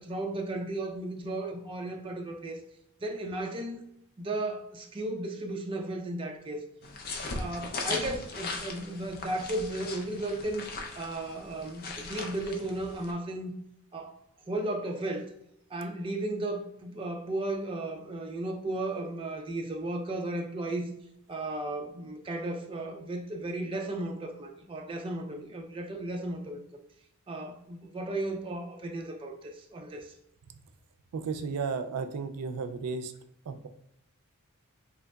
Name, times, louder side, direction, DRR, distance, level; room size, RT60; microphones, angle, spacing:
voice 1, 0.0-2.6 3.0-3.8 4.2-6.6 7.3-10.6 10.9-13.5 13.9-14.2 14.5-15.3 15.7-20.9 21.3-26.6 27.3-30.1, right 1 dB, 25° right, 3 dB, 0.4 m, -35 dB
sound 1, 6.8-13.1, left 3 dB, 45° left, 0.5 m, -38 dB
voice 2, 31.1-33.1 33.5-33.7, right 5 dB, 90° right, 8 dB, 0.4 m, -33 dB
3.8 x 3.0 x 2.3 m, 0.80 s
head